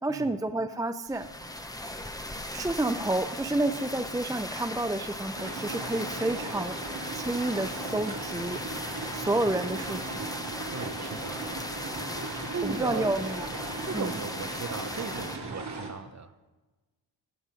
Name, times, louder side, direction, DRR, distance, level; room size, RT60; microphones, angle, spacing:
voice 1, 0.0-1.3 2.5-6.8 7.1-8.6 9.1-10.0 12.6-13.5 13.9-14.1, right 2 dB, 10° right, 8 dB, 0.4 m, -29 dB
sound 1, 1.1-15.4, left 1 dB, 10° left, 0.9 m, -38 dB
sound 2, 5.4-15.9, right 3 dB, 55° right, 2.3 m, -38 dB
voice 2, 10.7-11.4 12.5-13.1 13.8-16.3, right 5 dB, 35° right, 11 dB, 0.9 m, -37 dB
15.5 x 6.2 x 5.2 m, 1.2 s
cardioid pair, 55°, 46 cm